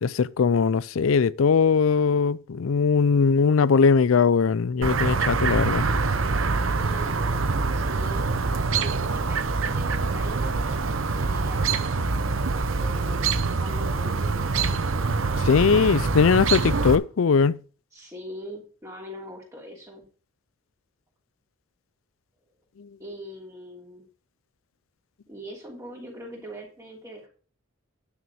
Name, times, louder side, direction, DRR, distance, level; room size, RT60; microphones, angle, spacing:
voice 1, 0.0-5.8 15.5-17.6, left 5 dB, 75° left, 0.5 m, -20 dB
Chirp tweet, 4.8-17.0, right 4 dB, 75° right, 0.8 m, -25 dB
voice 2, 6.7-7.3 7.7-8.3 8.8-16.9 17.9-20.0 23.0-24.1 25.3-27.3, equal, 15° right, 3.0 m, -42 dB
9.7 x 6.3 x 5.0 m
head